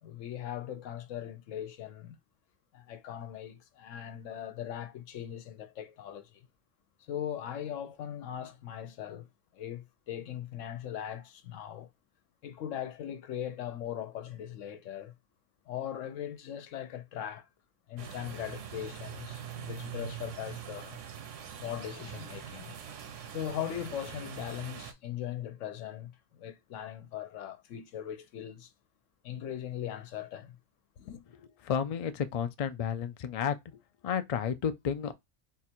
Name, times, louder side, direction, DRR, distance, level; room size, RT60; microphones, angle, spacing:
voice 1, 0.0-2.2 2.7-6.4 7.0-9.3 9.5-11.9 12.4-15.1 15.7-17.5 17.9-21.0 21.6-22.8 23.3-28.7 29.2-30.6 31.0-31.2, left 10 dB, 90° left, 1.0 m, -39 dB
sound 1, 18.0-24.9, right 9 dB, 80° right, 1.1 m, -43 dB
voice 2, 31.6-33.5 34.0-35.1, left 7 dB, 70° left, 0.3 m, -31 dB
3.9 x 2.5 x 4.3 m
omnidirectional pair, 1.3 m